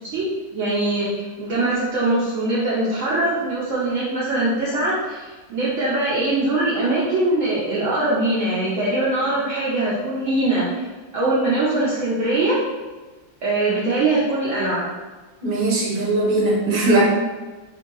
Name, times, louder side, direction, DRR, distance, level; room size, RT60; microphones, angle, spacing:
voice 1, 0.0-10.9 11.1-12.6 13.4-14.9, right 2 dB, 75° right, -7 dB, 0.7 m, -22 dB
voice 2, 15.4-17.0, right 2 dB, 40° right, -5 dB, 0.8 m, -19 dB
2.8 x 2.6 x 3.8 m, 1.3 s
omnidirectional pair, 2.1 m